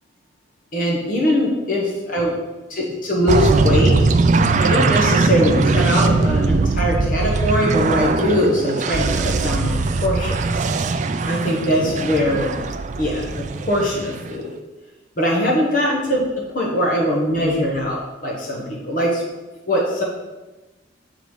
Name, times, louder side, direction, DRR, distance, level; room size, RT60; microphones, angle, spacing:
voice 1, 0.7-2.4 2.7-3.9 4.6-10.6 11.3-12.5 13.0-14.5 15.2-16.3 16.5-19.2 19.7-20.0, equal, 45° left, -3 dB, 1.0 m, -21 dB
sound 1, 3.3-14.4, right 3 dB, 40° right, 0.3 m, -20 dB
6.9 x 3.9 x 4.7 m, 1.1 s
head